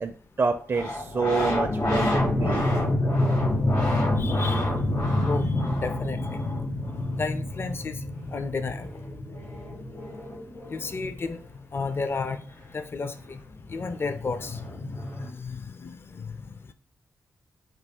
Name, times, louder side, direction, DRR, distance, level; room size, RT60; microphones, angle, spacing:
voice 1, 0.0-2.6, right 4 dB, 40° right, 5 dB, 0.4 m, -28 dB
sound 1, 0.7-11.1 13.2-13.3 13.5-15.3, left 1 dB, 75° left, 1.7 m, -27 dB
voice 2, 4.2-4.7 5.3-5.5 5.7-6.2 7.1-8.0 8.3-8.9 10.7-11.4 11.7-12.5 12.7-13.4 13.7-16.7, left 4 dB, 40° left, 10 dB, 0.5 m, -33 dB
3.9 x 2.4 x 3.5 m, 0.42 s
cardioid pair, 55°, 6 cm